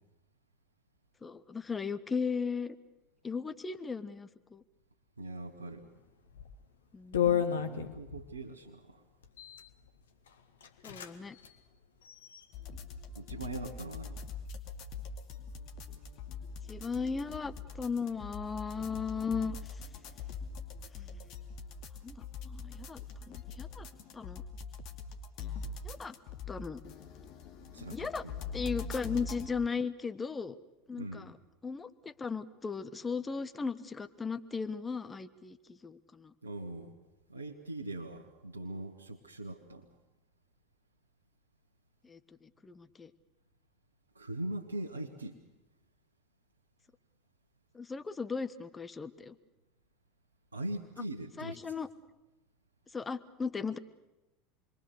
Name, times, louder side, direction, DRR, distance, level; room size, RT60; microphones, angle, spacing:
voice 1, 1.2-2.8 3.2-4.6 6.9-7.4 10.8-11.4 16.7-19.8 21.0-21.2 22.0-23.0 23.3-23.9 24.1-24.4 25.8-26.1 26.5-26.8 27.8-28.2 28.5-30.5 30.9-31.4 31.6-36.3 42.0-43.1 47.7-49.4 51.4-51.9 52.9-53.8, left 5 dB, 20° left, 11 dB, 1.2 m, -37 dB
voice 2, 5.2-5.8 7.5-9.0 13.1-14.3 27.7-28.4 31.0-31.3 36.4-36.9 37.3-39.9 44.1-45.4 50.5-51.7, right 1 dB, 85° right, 0 dB, 1.4 m, -41 dB
sound 1, 6.3-6.5 7.1-8.3 9.2-9.7 10.3-10.4 10.6-11.1 11.4-11.5 12.0-12.7, left 9 dB, 70° left, 1.6 m, -32 dB
sound 2, 12.5-29.5, left 5 dB, 50° left, 2.4 m, -43 dB
28.0 x 22.5 x 6.8 m, 1.0 s
figure-of-eight pair, 75°, 0 cm